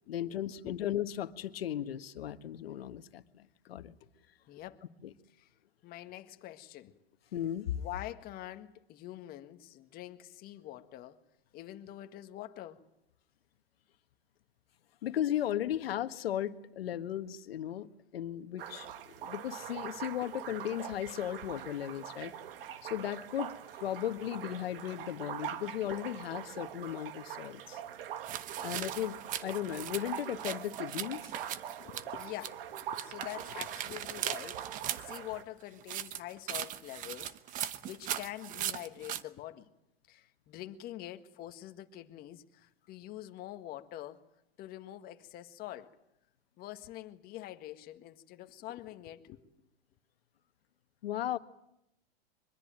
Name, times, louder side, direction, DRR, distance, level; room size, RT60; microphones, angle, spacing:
voice 1, 0.1-3.9 7.3-7.8 15.0-22.3 22.8-23.5 23.8-27.8 28.6-31.3 51.0-51.4, left 11 dB, 70° left, 1.6 m, -36 dB
voice 2, 4.5-4.8 5.4-5.5 5.8-7.0 7.8-11.2 11.5-12.8 15.6-15.7 31.8-39.7 40.1-44.2 44.6-45.9 46.6-49.4, left 14 dB, 30° left, 1.7 m, -45 dB
sound 1, 18.6-35.4, right 10 dB, 65° right, 1.7 m, -43 dB
sound 2, 28.2-32.5 32.8-35.2 35.8-39.2, right 11 dB, 25° right, 1.0 m, -39 dB
24.0 x 22.0 x 8.9 m
hypercardioid pair, 135°, 31 cm